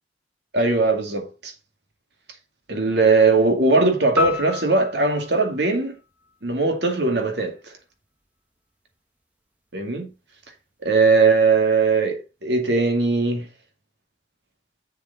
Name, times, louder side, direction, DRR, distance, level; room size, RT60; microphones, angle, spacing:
voice 1, 0.5-1.5 2.7-6.0 6.4-7.5 9.7-10.1 10.8-13.5, right 3 dB, 70° right, 2.2 m, -19 dB
sound 1, 4.2-6.6, left 4 dB, 10° right, 1.2 m, -30 dB
7.3 x 7.1 x 4.0 m
head